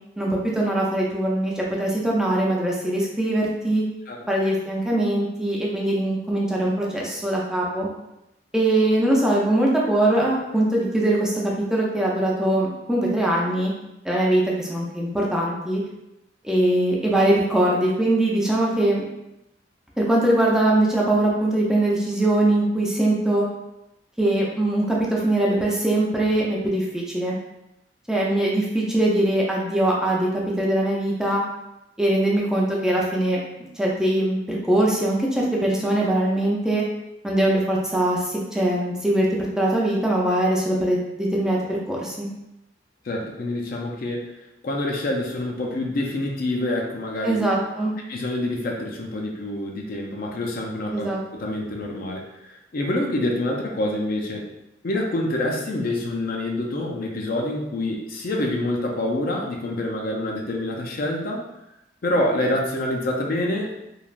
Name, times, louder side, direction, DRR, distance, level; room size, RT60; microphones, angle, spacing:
voice 1, 0.2-3.8 4.3-7.9 8.5-11.4 11.7-13.7 14.0-15.8 16.4-19.0 20.0-23.5 24.2-27.4 28.1-31.4 32.0-36.8 37.2-39.3 39.6-42.3 47.2-47.9 50.9-51.2, right 1 dB, 5° right, -4 dB, 0.4 m, -22 dB
voice 2, 43.0-44.2 44.6-47.4 48.1-54.4 54.8-61.5 62.0-63.7, left 1 dB, 55° left, 0 dB, 0.4 m, -26 dB
3.1 x 2.3 x 2.4 m, 0.89 s
head